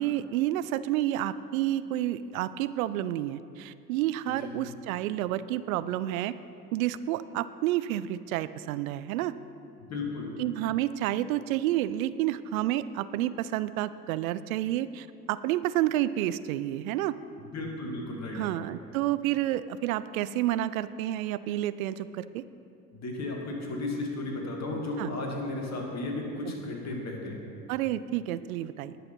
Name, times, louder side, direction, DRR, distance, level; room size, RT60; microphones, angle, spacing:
voice 1, 0.0-6.4 6.7-9.3 10.4-17.2 18.3-22.4 25.0-25.1 27.7-28.9, right 13 dB, 60° right, 15 dB, 0.5 m, -30 dB
voice 2, 9.8-10.4 17.4-18.5 22.9-27.4, left 2 dB, 35° left, 0 dB, 2.3 m, -34 dB
19.0 x 6.5 x 4.3 m, 2.5 s
figure-of-eight pair, 70°, 48 cm